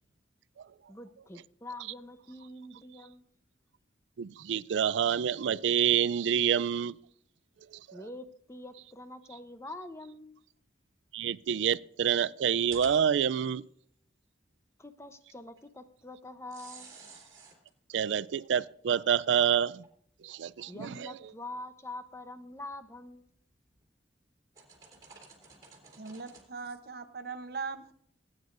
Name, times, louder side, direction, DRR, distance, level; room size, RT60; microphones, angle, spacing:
voice 1, 0.9-3.3 7.9-10.4 14.8-16.9 20.7-23.3, left 2 dB, 15° left, 0.7 m, -45 dB
voice 2, 4.2-6.9 7.7-7.8 11.1-13.6 17.9-19.8 20.2-21.1, right 8 dB, 80° right, 0.4 m, -27 dB
sound 1, 12.7-13.6 15.6-15.7 16.5-17.7 19.2-19.3 19.8-19.9 20.5-20.6 22.7-23.2 23.7-23.8 24.6-26.4, right 5 dB, 20° right, 3.2 m, -52 dB
voice 3, 26.0-27.9, right 4 dB, 55° right, 0.8 m, -40 dB
18.5 x 9.4 x 2.5 m
head